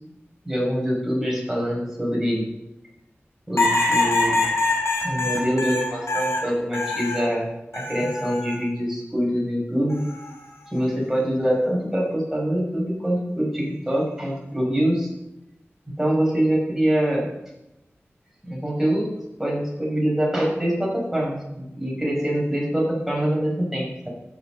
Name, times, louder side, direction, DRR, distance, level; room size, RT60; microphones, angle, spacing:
voice 1, 0.4-2.5 3.5-4.5 5.0-7.5 7.7-10.0 10.7-15.1 16.0-17.3 18.4-19.1 19.4-24.1, equal, 10° right, -3 dB, 6.7 m, -24 dB
sound 1, 3.6-7.3 7.7-8.5 9.9-10.3, left 2 dB, 85° left, 4.4 m, -24 dB
14.0 x 7.7 x 7.8 m, 0.92 s
wide cardioid pair, 70°, 5 cm